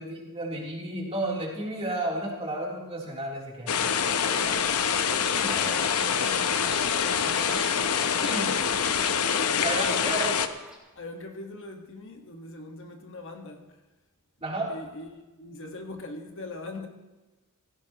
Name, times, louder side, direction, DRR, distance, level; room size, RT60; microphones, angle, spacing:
voice 1, 0.0-3.7 4.3-4.8 5.3-6.8 7.2-7.6 8.3-8.5 9.6-10.4 14.4-14.7, right 1 dB, 25° right, 3.3 m, -33 dB
sound 1, 3.7-10.5, left 7 dB, 75° left, 0.8 m, -25 dB
Chirp tweet, 5.0-10.8, right 1 dB, 5° right, 1.9 m, -45 dB
voice 2, 8.0-8.7 9.4-10.4 10.9-13.6 14.7-16.9, left 2 dB, 60° left, 1.6 m, -40 dB
16.5 x 16.0 x 3.0 m
head